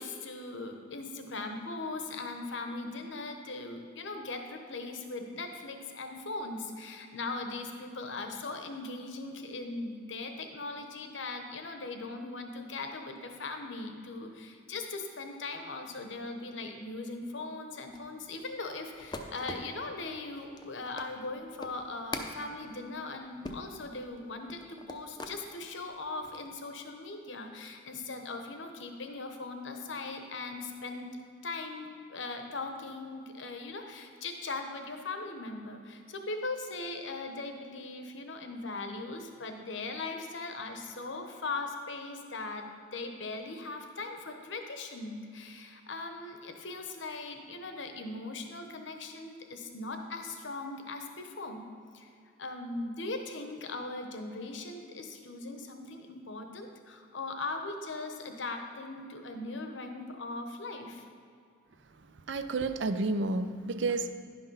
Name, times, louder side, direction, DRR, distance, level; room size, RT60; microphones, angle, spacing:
voice 1, 0.0-31.1 31.4-51.6 51.9-52.1 52.4-61.1, left 3 dB, 65° left, 5 dB, 1.0 m, -39 dB
sound 1, 17.9-25.4 25.9-26.5, left 2 dB, 20° left, 0.6 m, -44 dB
voice 2, 62.3-64.1, right 3 dB, 65° right, 10 dB, 0.5 m, -30 dB
11.0 x 5.9 x 5.4 m, 2.3 s
head